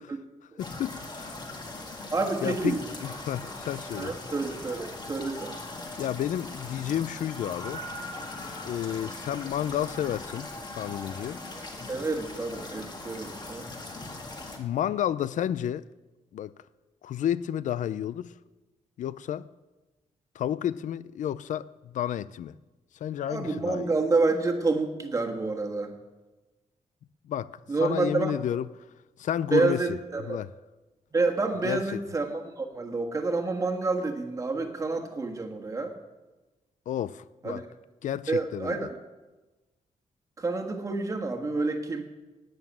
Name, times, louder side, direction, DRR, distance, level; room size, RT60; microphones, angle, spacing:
voice 1, 0.6-1.3 2.4-2.8 3.0-4.1 6.0-7.8 8.6-10.5 10.8-11.4 14.6-15.9 16.3-16.5 17.0-18.3 19.0-19.5 20.3-22.5 22.9-23.9 27.3-28.7 29.2-30.0 30.3-30.5 31.6-32.0 36.9-37.6 38.0-38.9, left 10 dB, 80° left, 0.4 m, -31 dB
sound 1, 0.6-14.6, left 2 dB, 35° left, 1.8 m, -40 dB
voice 2, 2.1-2.8 4.0-5.5 11.9-13.7 23.3-25.9 27.7-28.3 29.5-30.4 31.1-35.9 37.4-37.6 38.3-38.9 40.4-42.0, right 3 dB, 25° right, 1.4 m, -28 dB
11.5 x 9.5 x 8.8 m
wide cardioid pair, 170°, 13 cm